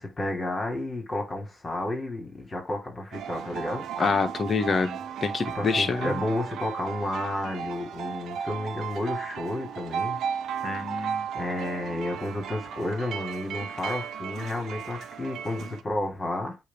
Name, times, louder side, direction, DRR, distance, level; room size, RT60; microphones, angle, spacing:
voice 1, 0.0-3.9 5.5-10.2 11.3-16.6, left 1 dB, 35° left, 3.2 m, -31 dB
sound 1, 3.1-15.8, right 8 dB, 70° right, 0.8 m, -35 dB
voice 2, 4.0-6.1 10.6-11.3, left 4 dB, 50° left, 1.4 m, -26 dB
8.2 x 3.0 x 4.5 m
hypercardioid pair, 50°, 0 cm